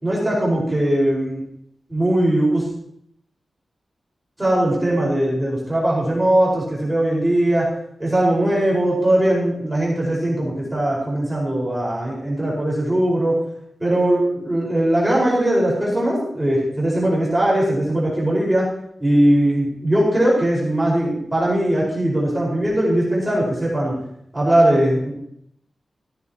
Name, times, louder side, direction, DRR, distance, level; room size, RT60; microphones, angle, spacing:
voice 1, 0.0-1.4 1.9-2.7 4.4-7.7 8.0-13.4 13.8-18.7 19.0-24.0 24.3-25.1, right 1 dB, 10° right, -6 dB, 4.9 m, -20 dB
17.0 x 15.0 x 3.0 m, 0.71 s
wide cardioid pair, 160°, 0 cm